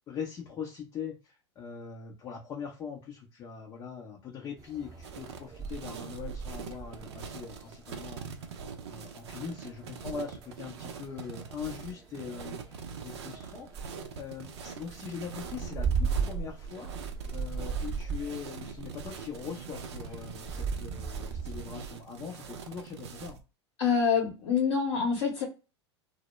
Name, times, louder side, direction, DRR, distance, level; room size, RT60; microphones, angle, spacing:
voice 1, 0.1-8.6 8.9-13.8 14.2-16.9 17.3-23.4, left 7 dB, 30° left, 0 dB, 0.5 m, -41 dB
sound 1, 4.6-21.6, right 5 dB, 25° right, 0.8 m, -38 dB
sound 2, 5.0-23.4, right 6 dB, 70° right, 0.5 m, -43 dB
voice 2, 23.8-25.4, left 6 dB, 65° left, -2 dB, 0.8 m, -26 dB
2.1 x 2.0 x 3.0 m, 0.29 s
hypercardioid pair, 90°, 15 cm